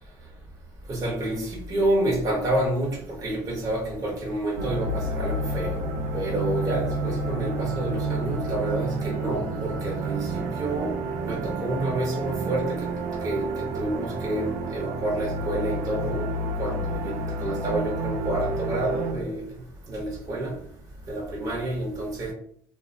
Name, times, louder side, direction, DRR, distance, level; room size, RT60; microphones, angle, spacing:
voice 1, 0.9-5.8 6.1-10.9 11.2-12.9 13.2-13.5 13.7-16.3 16.6-19.4 19.9-20.5 21.1-22.3, right 1 dB, 35° right, -3 dB, 0.9 m, -28 dB
sound 1, 4.6-19.1, right 2 dB, 75° right, 0.4 m, -30 dB
2.4 x 2.1 x 2.7 m, 0.63 s
supercardioid pair, 75°, 10 cm